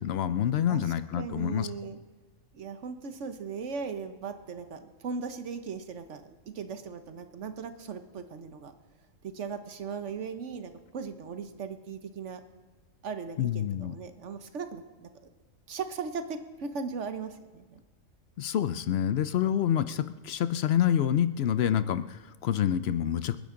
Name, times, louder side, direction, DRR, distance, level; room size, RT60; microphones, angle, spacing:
voice 1, 0.0-1.7 13.4-13.9 18.4-23.4, left 10 dB, 60° left, 13 dB, 0.7 m, -27 dB
voice 2, 1.2-2.0 2.5-8.7 9.2-12.4 13.0-15.3 15.7-17.8, right 5 dB, 60° right, 9 dB, 1.2 m, -38 dB
27.5 x 10.5 x 3.8 m, 1.3 s
omnidirectional pair, 1.4 m